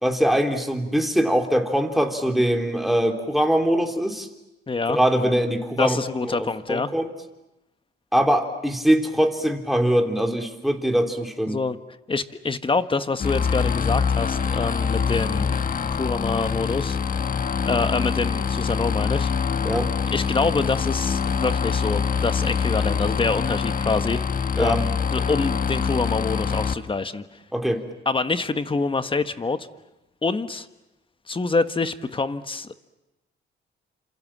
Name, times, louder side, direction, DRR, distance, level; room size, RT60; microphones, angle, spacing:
voice 1, 0.0-4.3 4.9-6.0 6.2-7.1 8.1-11.6 19.6-19.9 24.6-24.8 27.5-27.8, equal, ahead, 3 dB, 3.4 m, -22 dB
voice 2, 4.7-5.0 5.8-6.9 11.5-11.8 12.1-15.6 15.9-17.0 17.6-19.3 20.1-24.2 24.5-27.4 28.0-29.7 30.2-30.7 31.3-32.7, left 4 dB, 25° left, 10 dB, 1.4 m, -26 dB
sound 1, 13.2-26.7, left 6 dB, 45° left, 1.3 m, -24 dB
28.5 x 27.5 x 7.5 m, 0.96 s
cardioid pair, 90°, 20 cm